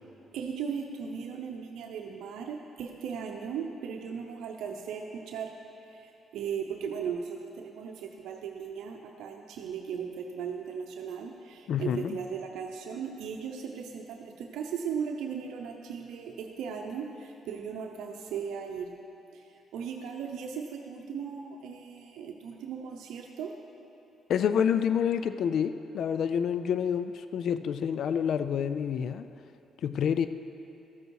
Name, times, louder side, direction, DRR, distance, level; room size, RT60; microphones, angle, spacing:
voice 1, 0.3-5.5 5.8-18.9 19.3-23.5, right 6 dB, 85° right, 2 dB, 0.7 m, -37 dB
voice 2, 11.7-12.2 24.3-29.3 29.8-30.3, left 8 dB, 70° left, 11 dB, 0.3 m, -28 dB
13.5 x 8.0 x 4.7 m, 2.9 s
cardioid pair, 90°, 0 cm